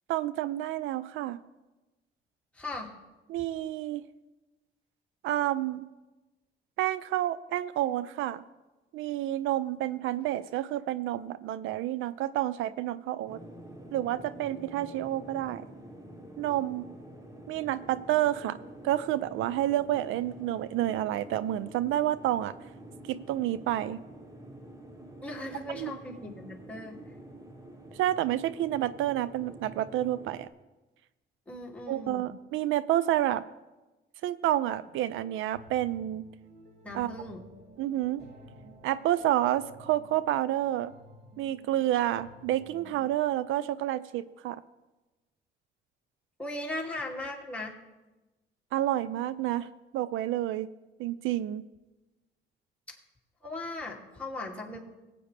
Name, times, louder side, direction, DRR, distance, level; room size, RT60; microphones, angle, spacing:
voice 1, 0.1-1.4 3.3-4.0 5.2-5.9 6.8-8.4 8.9-13.4 13.9-15.7 16.4-16.9 17.5-18.6 18.8-22.5 23.1-24.0 25.7-25.9 27.9-30.5 31.9-33.4 34.2-36.2 36.9-37.1 37.8-38.2 38.8-40.9 41.4-44.6 48.7-50.7 51.0-51.6, right 13 dB, 85° right, 16 dB, 0.4 m, -29 dB
voice 2, 2.6-2.9 25.2-27.0 31.5-32.3 36.8-37.4 46.4-47.8 53.4-54.8, left 1 dB, 5° left, -3 dB, 2.5 m, -38 dB
sound 1, 13.3-30.5, right 1 dB, 15° right, 1.3 m, -48 dB
sound 2, 34.8-43.1, right 1 dB, 55° right, 2.9 m, -53 dB
19.0 x 8.6 x 3.3 m, 1.1 s
cardioid pair, 90°, 20 cm